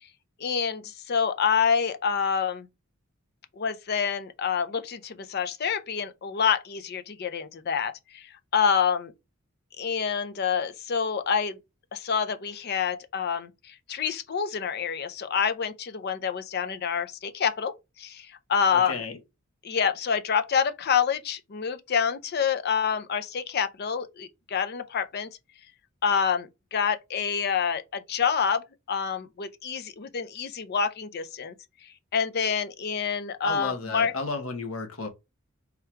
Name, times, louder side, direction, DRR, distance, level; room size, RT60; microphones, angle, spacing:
voice 1, 0.4-2.7 3.6-9.1 9.8-11.6 11.9-19.0 19.6-25.3 26.0-28.6 28.9-31.5 32.1-34.1, left 6 dB, 50° left, 0.5 m, -27 dB
voice 2, 18.7-19.2 33.4-35.1, left 3 dB, 70° left, 0.9 m, -33 dB
3.6 x 2.3 x 4.3 m
head